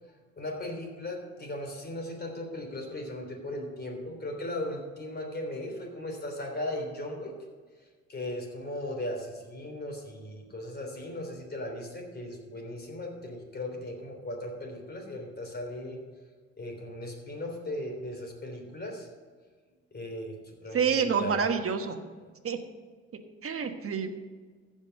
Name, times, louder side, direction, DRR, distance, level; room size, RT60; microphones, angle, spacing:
voice 1, 0.1-7.3 8.1-16.0 16.6-19.1 19.9-21.4, left 1 dB, 35° left, 1 dB, 3.4 m, -37 dB
voice 2, 20.7-22.0 22.4-22.6 23.4-24.1, right 6 dB, 45° right, 6 dB, 1.3 m, -27 dB
14.5 x 5.3 x 6.6 m, 1.5 s
cardioid pair, 90°, 30 cm